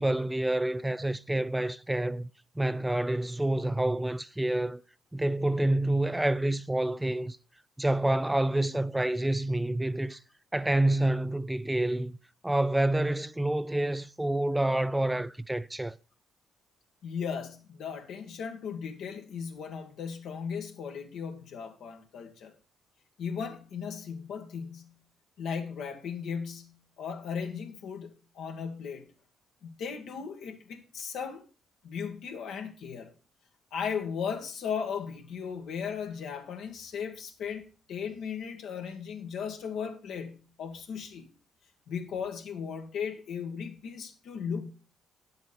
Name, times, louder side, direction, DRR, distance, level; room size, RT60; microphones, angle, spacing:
voice 1, 0.0-2.3 2.6-4.8 5.1-7.4 7.8-10.2 10.5-12.2 12.4-16.0, right 1 dB, 10° right, 0.4 m, -28 dB
voice 2, 17.0-22.5 23.2-25.0 25.4-29.1 29.6-31.4 31.8-33.1 33.7-41.3 41.9-44.6, left 6 dB, 80° left, 1.8 m, -37 dB
9.9 x 7.7 x 4.3 m
cardioid pair, 90°, 0 cm